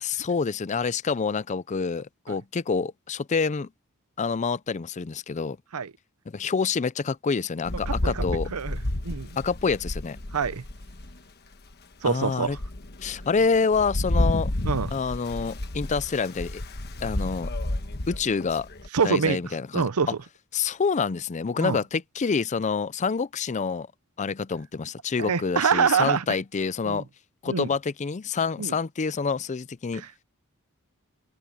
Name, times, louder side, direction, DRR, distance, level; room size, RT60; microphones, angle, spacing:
voice 1, 0.0-3.7 4.2-5.6 6.3-8.5 9.4-10.2 12.0-12.6 13.0-14.5 14.9-16.6 17.0-17.5 18.1-18.7 19.0-19.9 20.5-23.9 24.2-27.1 27.4-30.0, left 5 dB, 35° left, 0.4 m, -27 dB
Rain, 7.6-11.2 11.7-11.8 12.3-18.9, left 1 dB, 50° left, 1.3 m, -31 dB
voice 2, 7.9-8.2 8.5-9.4 10.3-10.6 12.0-12.6 14.6-14.9 18.9-19.4 19.7-20.1 21.6-21.8 25.2-26.2 26.8-27.0 27.5-27.7 28.6-28.8 29.9-30.1, right 6 dB, 85° right, 0.7 m, -25 dB
head